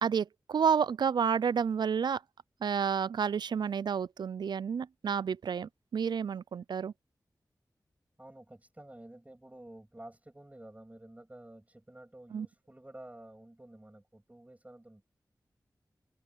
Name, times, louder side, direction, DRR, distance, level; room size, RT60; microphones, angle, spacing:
voice 1, 0.0-2.2 2.6-6.9 12.3-12.5, right 7 dB, 80° right, 0.4 m, -30 dB
voice 2, 8.2-15.0, right 1 dB, 20° right, 6.8 m, -51 dB
cardioid pair, 50°, 7 cm